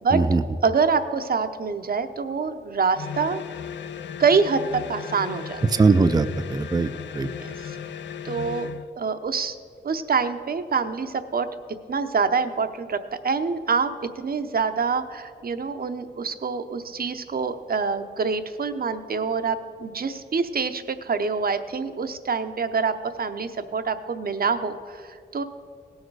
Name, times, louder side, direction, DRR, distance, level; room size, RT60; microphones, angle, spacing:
voice 1, 0.1-0.4 5.7-7.3, right 3 dB, 20° right, 11 dB, 0.4 m, -21 dB
voice 2, 0.6-3.4 4.2-5.6 7.4-7.5 8.2-9.6 9.8-11.5 11.9-13.0 13.2-13.9 14.2-25.4, right 5 dB, 55° right, 9 dB, 0.7 m, -25 dB
sound 1, 2.9-8.9, left 8 dB, 90° left, 0.4 m, -35 dB
17.5 x 6.5 x 4.7 m, 2.2 s
cardioid pair, 65°, 18 cm